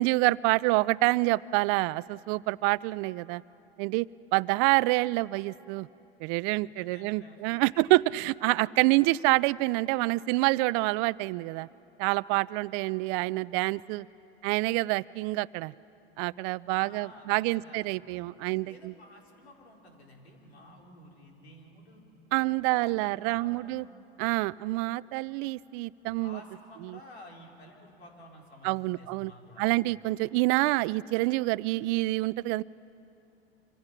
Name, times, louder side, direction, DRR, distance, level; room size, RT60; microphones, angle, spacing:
voice 1, 0.0-3.4 3.8-4.1 4.3-5.9 6.2-11.7 12.0-14.1 14.4-15.7 16.2-18.9 22.3-23.8 24.2-26.4 26.8-27.0 28.6-29.3 29.6-32.6, right 21 dB, 55° right, 20 dB, 0.5 m, -27 dB
voice 2, 6.6-7.7 16.7-17.9 18.4-22.0 22.4-23.8 26.2-29.8, left 1 dB, 85° left, 0 dB, 4.3 m, -52 dB
26.0 x 26.0 x 6.0 m, 2.9 s
hypercardioid pair, 90°, 31 cm